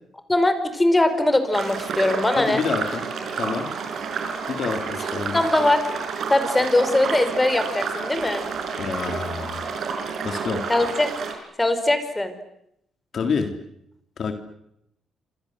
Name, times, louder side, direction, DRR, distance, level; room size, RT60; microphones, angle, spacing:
voice 1, 0.3-2.6 5.3-5.8 6.3-8.4 10.7-11.1 11.6-12.3, left 1 dB, 15° left, 10 dB, 5.0 m, -21 dB
sound 1, 1.5-11.3, right 5 dB, 65° right, 6.4 m, -30 dB
voice 2, 2.4-3.0 3.4-3.7 4.5-5.4 8.8-9.7 10.2-10.7 13.1-13.5 14.2-14.3, left 5 dB, 55° left, 7 dB, 3.7 m, -28 dB
27.5 x 26.0 x 8.1 m, 0.77 s
cardioid pair, 90°, 0 cm